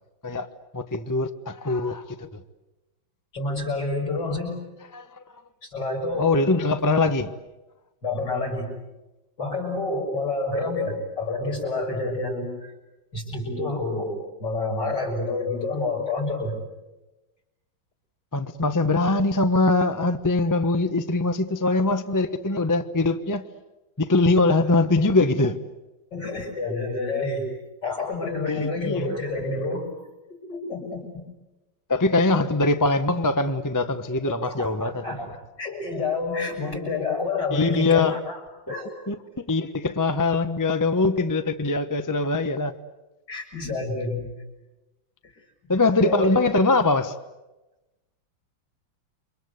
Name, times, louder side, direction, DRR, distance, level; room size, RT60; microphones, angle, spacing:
voice 1, 0.7-2.3 4.9-5.2 6.2-7.3 18.3-23.5 24.0-25.6 28.5-29.1 31.9-35.2 37.5-38.2 39.1-42.7 45.7-47.1, left 3 dB, 15° left, 0.7 m, -22 dB
voice 2, 3.3-4.6 5.6-6.4 8.0-8.7 9.4-12.7 13.1-16.6 24.6-24.7 26.1-27.5 27.8-29.9 30.3-31.2 34.4-38.4 38.7-38.9 43.3-44.3 45.2-45.3 46.0-46.3, left 3 dB, 60° left, 7.1 m, -28 dB
28.5 x 25.0 x 8.2 m
omnidirectional pair, 2.2 m